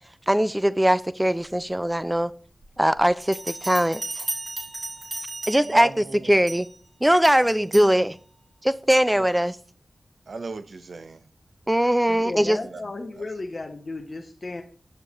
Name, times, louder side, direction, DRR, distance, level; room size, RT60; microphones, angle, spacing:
voice 1, 0.3-2.3 2.8-4.2 5.5-5.9 6.3-6.7 7.0-8.2 8.6-9.6 11.7-12.6, equal, 10° right, 0.4 m, -21 dB
Bell, 3.2-5.9 6.5-6.8 7.2-8.0, right 2 dB, 50° right, 4.1 m, -35 dB
voice 2, 5.6-6.4 7.4-7.8 9.1-9.3 10.3-11.2 12.1-12.3 12.6-12.8 13.2-13.3, right 3 dB, 70° right, 0.5 m, -36 dB
voice 3, 12.1-14.6, left 2 dB, 55° left, 0.8 m, -34 dB
6.9 x 6.6 x 3.0 m
cardioid pair, 50°, 0 cm